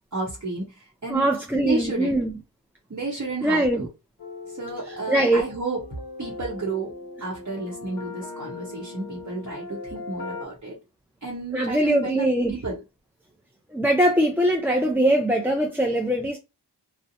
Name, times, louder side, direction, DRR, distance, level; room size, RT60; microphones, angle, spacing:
voice 1, 0.1-1.3 1.6-2.2 2.9-3.9 4.5-5.8 6.2-10.8 11.2-12.8, right 3 dB, 40° right, 0.8 m, -32 dB
voice 2, 1.1-2.3 3.4-3.9 5.1-5.4 11.5-12.5 13.7-16.4, right 1 dB, 5° right, 0.4 m, -22 dB
sound 1, 4.2-10.5, left 3 dB, 55° left, 0.7 m, -39 dB
2.7 x 2.1 x 2.6 m
wide cardioid pair, 45°, 43 cm